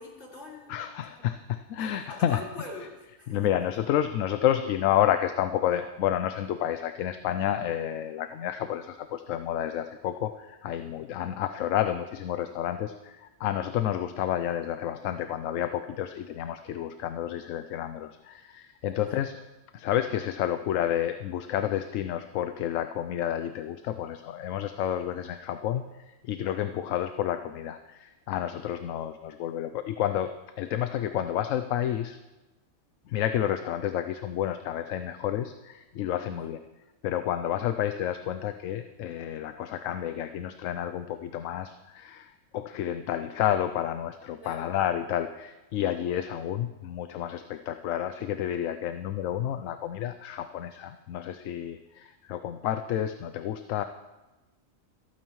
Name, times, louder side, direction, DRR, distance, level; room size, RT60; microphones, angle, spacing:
voice 1, 0.0-0.8 1.2-1.3 1.8-3.4 18.9-19.2 36.2-36.6 44.4-44.7, left 2 dB, 55° left, -3 dB, 2.9 m, -44 dB
voice 2, 0.7-2.4 3.3-19.4 19.7-30.3 30.6-32.2 33.1-36.6 37.0-53.8, left 11 dB, 80° left, 9 dB, 1.0 m, -30 dB
26.5 x 8.9 x 3.1 m, 1.1 s
omnidirectional pair, 1.3 m